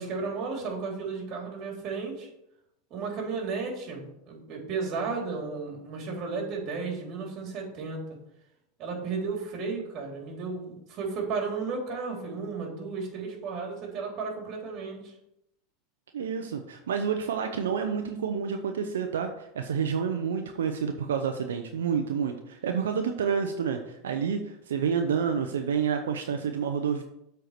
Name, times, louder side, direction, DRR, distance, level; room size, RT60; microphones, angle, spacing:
voice 1, 0.0-2.3 2.9-8.0 8.8-15.1, right 4 dB, 45° right, 0 dB, 3.5 m, -34 dB
voice 2, 16.1-27.0, right 7 dB, 90° right, 5 dB, 0.7 m, -29 dB
7.7 x 4.6 x 6.7 m, 0.80 s
hypercardioid pair, 105°, 0 cm